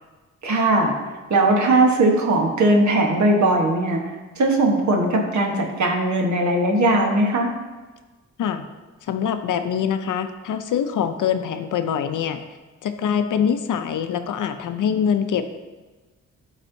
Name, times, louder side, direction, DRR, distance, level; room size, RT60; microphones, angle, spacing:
voice 1, 0.4-0.9 1.3-4.0 4.4-7.5, right 2 dB, 65° right, 1 dB, 1.2 m, -19 dB
voice 2, 9.1-12.4 12.8-15.5, left 8 dB, 80° left, 8 dB, 0.6 m, -24 dB
11.5 x 4.2 x 2.7 m, 1.2 s
wide cardioid pair, 115°, 31 cm